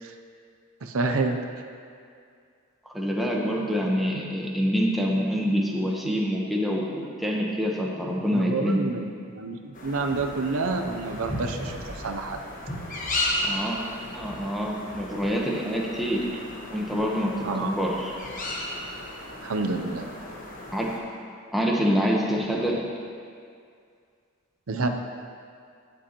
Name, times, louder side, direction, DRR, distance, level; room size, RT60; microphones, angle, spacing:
voice 1, 0.8-1.4 8.3-12.4 17.4-17.7 19.4-20.1 24.7-24.9, right 3 dB, 70° right, 5 dB, 0.6 m, -28 dB
voice 2, 2.9-8.8 13.4-13.8 14.1-16.2 16.7-18.1 20.7-20.9 21.5-22.8, equal, ahead, -3 dB, 1.0 m, -26 dB
sound 1, 9.7-21.0, left 1 dB, 40° left, 1.4 m, -35 dB
17.0 x 7.6 x 3.0 m, 2.3 s
head